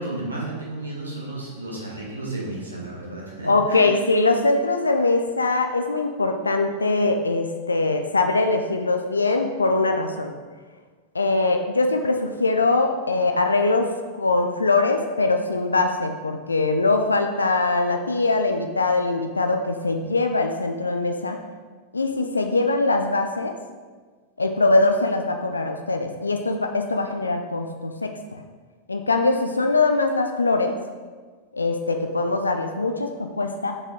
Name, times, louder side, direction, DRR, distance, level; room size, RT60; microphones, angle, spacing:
voice 1, 0.0-3.9, right 2 dB, 80° right, -5 dB, 1.9 m, -32 dB
voice 2, 3.4-10.3 11.1-13.9 14.2-21.4 21.9-23.5 24.4-28.4 28.9-30.8 31.5-33.7, left 3 dB, 80° left, 5 dB, 0.4 m, -22 dB
6.4 x 5.0 x 3.7 m, 1.4 s
figure-of-eight pair, 90°, 0 cm